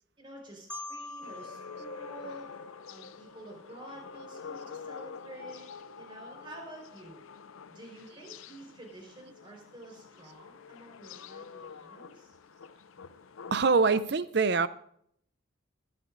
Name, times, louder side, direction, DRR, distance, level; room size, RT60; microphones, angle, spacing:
voice 1, 0.2-2.6 2.9-5.7 6.0-7.2 7.7-12.4, right 1 dB, 25° right, 4.4 m, -49 dB
Marimba xylophone, 0.7-3.5, left 2 dB, 5° left, 0.5 m, -45 dB
sound 1, 1.2-14.0, left 5 dB, 90° left, 0.6 m, -47 dB
voice 2, 13.5-14.7, right 4 dB, 55° right, 0.6 m, -24 dB
21.0 x 11.0 x 2.6 m
head